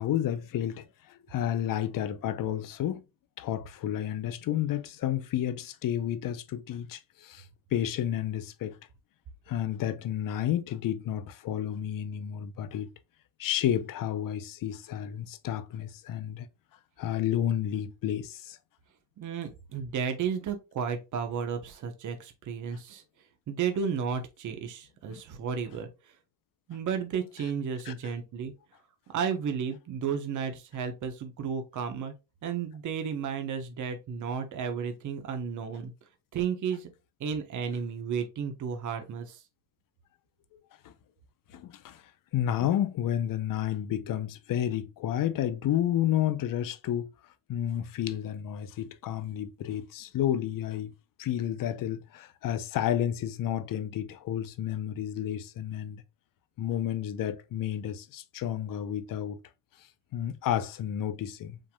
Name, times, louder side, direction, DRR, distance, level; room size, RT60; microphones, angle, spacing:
voice 1, 0.0-3.0 3.4-7.4 7.7-8.8 9.5-12.9 13.4-16.5 17.0-18.6 25.1-25.2 27.8-28.1 40.8-40.9 41.5-42.0 42.3-47.1 47.5-50.9 51.2-56.0 56.6-59.4 60.1-61.6, left 11 dB, 45° left, 0.8 m, -31 dB
voice 2, 19.2-23.0 23.5-26.1 26.7-28.5 29.1-32.1 32.4-35.9 36.3-36.9 37.2-39.4, right 7 dB, 40° right, 1.1 m, -33 dB
5.6 x 3.5 x 2.3 m
cardioid pair, 115°, 46 cm